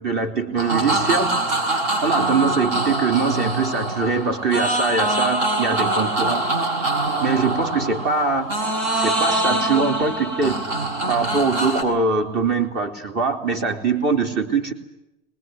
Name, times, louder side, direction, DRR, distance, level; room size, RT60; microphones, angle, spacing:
voice 1, 0.0-1.3 2.0-6.4 7.2-8.5 8.9-10.6 11.1-14.7, right 4 dB, 35° right, 6 dB, 4.0 m, -22 dB
sound 1, 0.6-11.8, right 2 dB, 55° right, 7.1 m, -24 dB
25.0 x 21.0 x 9.6 m, 0.87 s
supercardioid pair, 140°, 29 cm